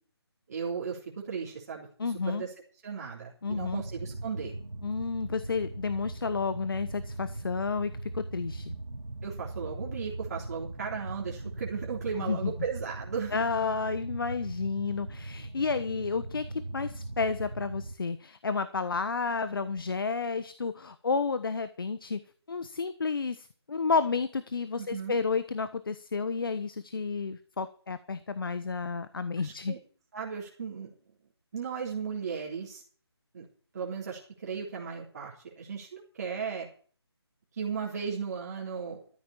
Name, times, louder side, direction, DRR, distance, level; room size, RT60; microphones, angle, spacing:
voice 1, 0.5-1.9 2.3-2.5 2.8-4.5 9.2-13.4 24.8-25.2 29.4-29.8 30.1-30.9 31.5-32.8 33.3-33.5 33.7-36.7 37.5-39.0, right 6 dB, 35° right, -3 dB, 3.6 m, -36 dB
voice 2, 2.0-2.4 3.4-3.8 4.8-8.7 12.2-12.5 13.3-22.2 22.5-29.7, left 4 dB, 55° left, 12 dB, 1.2 m, -31 dB
sound 1, 3.5-17.9, right 2 dB, 85° right, 2.3 m, -40 dB
14.0 x 8.8 x 7.0 m, 0.43 s
figure-of-eight pair, 155°, 14 cm